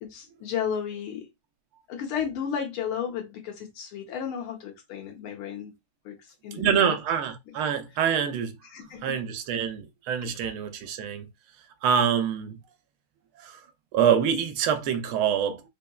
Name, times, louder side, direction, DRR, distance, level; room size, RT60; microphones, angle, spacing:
voice 1, 0.0-1.3 1.9-5.7 6.1-6.2 6.4-7.0 7.5-7.6 8.7-9.2 10.2-10.3, left 8 dB, 80° left, 1.9 m, -33 dB
voice 2, 6.5-8.6 9.0-11.3 11.8-12.6 13.4-13.6 13.9-15.6, right 8 dB, 85° right, 1.5 m, -25 dB
4.6 x 2.9 x 2.2 m
omnidirectional pair, 2.3 m